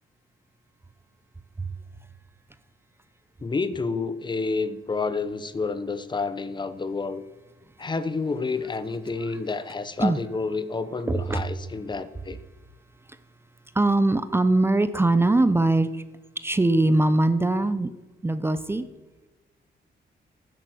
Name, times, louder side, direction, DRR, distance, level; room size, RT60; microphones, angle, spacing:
voice 1, 3.4-7.2 7.8-12.4, left 4 dB, 25° left, 13 dB, 0.9 m, -29 dB
voice 2, 11.1-11.4 13.7-16.0 16.4-17.9 18.2-18.8, right 2 dB, 15° right, 12 dB, 0.7 m, -21 dB
15.5 x 11.0 x 7.8 m, 1.1 s
wide cardioid pair, 165°, 18 cm